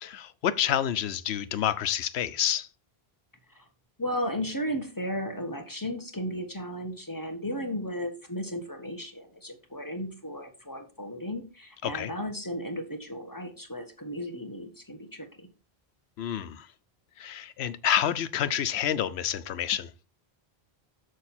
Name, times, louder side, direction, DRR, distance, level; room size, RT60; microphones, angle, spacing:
voice 1, 0.0-2.7 11.8-12.1 16.2-16.7 17.2-19.9, left 10 dB, 90° left, 0.9 m, -28 dB
voice 2, 4.0-15.5, equal, 20° left, 1.2 m, -35 dB
7.1 x 6.4 x 4.3 m
omnidirectional pair, 1.0 m